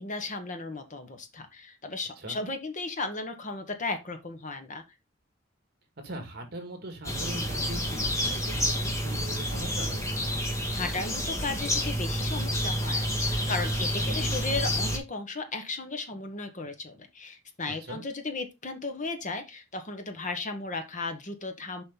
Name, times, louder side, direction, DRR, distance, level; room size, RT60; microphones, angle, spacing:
voice 1, 0.0-4.8 10.5-21.8, left 3 dB, 40° left, 7 dB, 1.3 m, -35 dB
voice 2, 6.0-10.1 14.0-14.3 17.7-18.0, right 1 dB, 55° right, 6 dB, 2.2 m, -40 dB
sound 1, 7.0-15.0, equal, 15° left, 1.9 m, -29 dB
7.1 x 5.2 x 3.8 m, 0.23 s
head